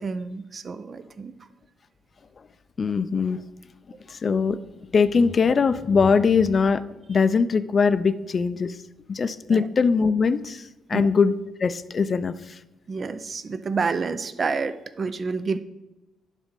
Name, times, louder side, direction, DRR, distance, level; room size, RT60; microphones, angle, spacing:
voice 1, 0.0-1.3 9.5-9.7 10.9-11.1 12.9-15.6, right 4 dB, 40° right, 12 dB, 0.5 m, -29 dB
voice 2, 2.8-3.4 4.1-6.8 7.1-8.8 9.1-11.3 11.6-12.6, left 5 dB, 40° left, 13 dB, 0.5 m, -21 dB
11.0 x 4.1 x 5.2 m, 0.99 s
cardioid pair, 90°, 0 cm